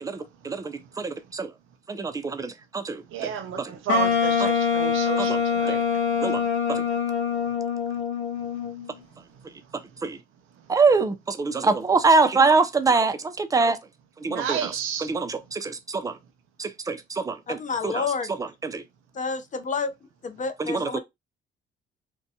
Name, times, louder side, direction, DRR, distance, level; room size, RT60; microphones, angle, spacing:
voice 1, 0.0-1.5 1.9-3.3 3.6-3.7 5.2-5.4 5.7-5.8 6.2-6.4 6.7-6.8 10.0-10.2 10.7-13.8 14.2-14.7 15.0-16.2 16.6-17.6 17.8-18.0 18.4-18.8 20.6-21.0, right 4 dB, 15° right, 0.4 m, -24 dB
voice 2, 3.1-5.9 6.3-6.4 14.3-15.1, right 9 dB, 85° right, 0.6 m, -31 dB
Wind instrument woodwind instrument, 3.9-8.9, left 6 dB, 75° left, 0.7 m, -24 dB
voice 3, 17.5-18.3 19.1-19.9 20.2-21.0, left 5 dB, 40° left, 0.5 m, -29 dB
2.6 x 2.2 x 2.7 m
cardioid pair, 90°, 20 cm